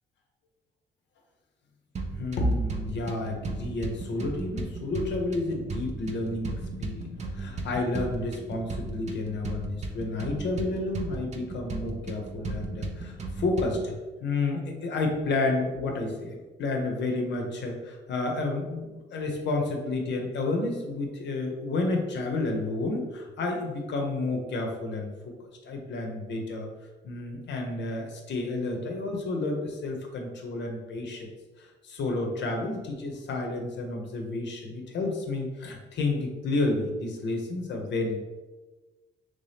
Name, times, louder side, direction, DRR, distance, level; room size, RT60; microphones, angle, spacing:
sound 1, 2.0-14.0, right 3 dB, 35° right, 0.5 m, -36 dB
voice 1, 2.2-13.9 14.2-25.3 25.6-26.7 27.0-31.3 31.6-38.2, left 2 dB, 65° left, 2 dB, 0.7 m, -30 dB
3.2 x 2.7 x 3.4 m, 1.2 s
cardioid pair, 90°, 20 cm